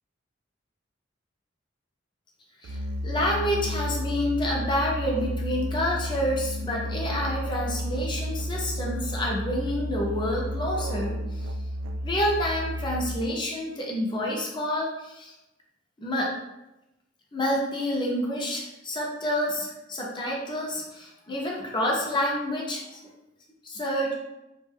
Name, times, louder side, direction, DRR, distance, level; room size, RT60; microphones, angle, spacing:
Musical instrument, 2.6-13.4, equal, 85° right, 0.3 m, -32 dB
voice 1, 3.0-11.5 12.0-15.3 16.0-16.3 17.3-23.0 23.6-24.1, equal, 25° left, -2 dB, 0.6 m, -28 dB
2.5 x 2.2 x 3.4 m, 0.93 s
head